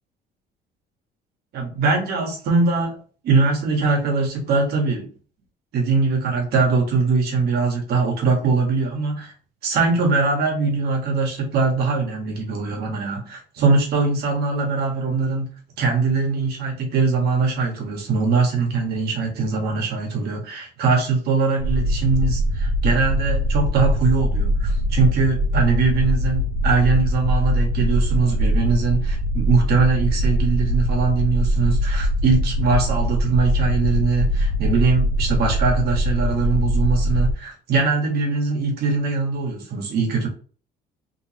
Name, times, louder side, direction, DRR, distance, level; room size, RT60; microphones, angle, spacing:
voice 1, 1.5-3.0 3.2-5.1 5.7-9.3 9.6-40.3, right 4 dB, 70° right, 1.6 m, -21 dB
sound 1, 21.6-37.3, equal, 50° right, 1.2 m, -22 dB
3.5 x 3.1 x 2.9 m
cardioid pair, 110°, 17 cm